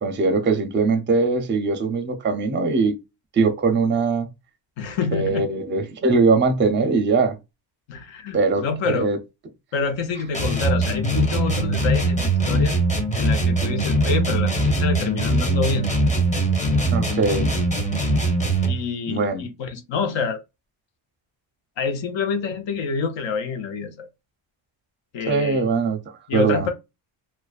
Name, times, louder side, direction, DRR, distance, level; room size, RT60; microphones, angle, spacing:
voice 1, 0.0-3.0 3.3-4.3 5.1-7.4 8.3-9.2 16.9-17.5 19.1-19.5 25.3-26.7, right 4 dB, 25° right, 0.5 m, -21 dB
voice 2, 4.8-5.5 7.9-9.1 9.7-12.7 13.1-15.9 18.6-20.4 21.8-24.1 25.1-25.7 26.3-26.7, left 5 dB, 65° left, 0.7 m, -27 dB
sound 1, 10.3-18.8, right 2 dB, 15° left, 0.8 m, -21 dB
2.4 x 2.2 x 2.3 m
cardioid pair, 85°, 49 cm